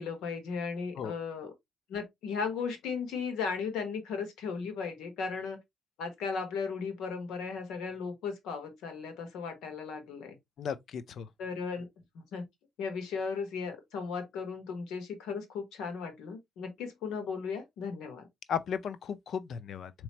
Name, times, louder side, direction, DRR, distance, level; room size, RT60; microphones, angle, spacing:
voice 1, 0.0-1.5 1.9-5.6 6.0-10.4 11.4-11.9 12.1-12.5 12.8-18.2, left 5 dB, 85° left, 1.3 m, -36 dB
voice 2, 10.6-11.3 18.5-19.9, left 7 dB, 65° left, 0.4 m, -35 dB
4.1 x 3.0 x 2.9 m
cardioid pair, 90°, 0 cm